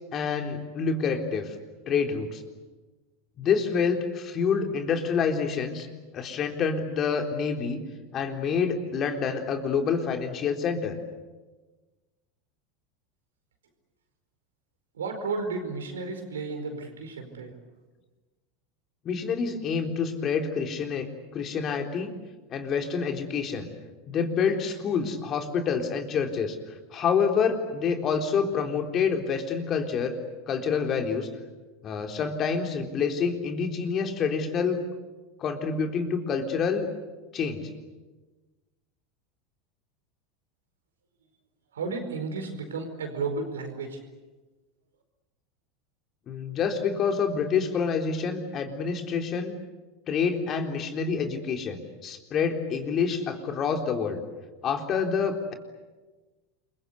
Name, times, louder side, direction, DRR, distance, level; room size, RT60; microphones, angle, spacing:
voice 1, 0.1-1.5 1.9-2.4 3.4-5.9 6.1-7.8 8.1-11.0 19.0-22.1 22.5-23.7 24.1-26.6 26.9-30.2 30.5-31.3 31.8-34.8 35.4-36.9 37.3-37.7 46.3-49.5 50.1-54.2 54.6-55.5, left 6 dB, 40° left, 4 dB, 3.9 m, -27 dB
voice 2, 14.9-17.5 41.7-44.0, right 4 dB, 80° right, 6 dB, 4.8 m, -33 dB
28.0 x 23.5 x 8.3 m, 1.2 s
figure-of-eight pair, 80°, 0 cm